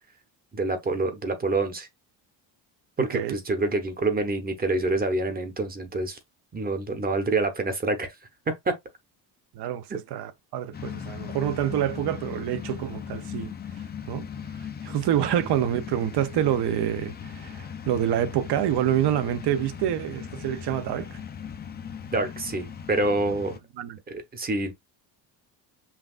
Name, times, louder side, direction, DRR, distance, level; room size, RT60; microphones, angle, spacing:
voice 1, 0.5-1.9 3.0-6.2 6.5-8.1 8.6-8.7 22.1-23.6 24.1-24.7, right 2 dB, 20° right, 0.8 m, -27 dB
voice 2, 3.0-3.4 9.5-13.5 14.1-14.3 14.6-21.2 23.8-24.0, right 11 dB, 65° right, 0.7 m, -27 dB
sound 1, 10.7-23.6, left 7 dB, 25° left, 0.4 m, -38 dB
5.8 x 2.4 x 2.4 m
cardioid pair, 145°, 43 cm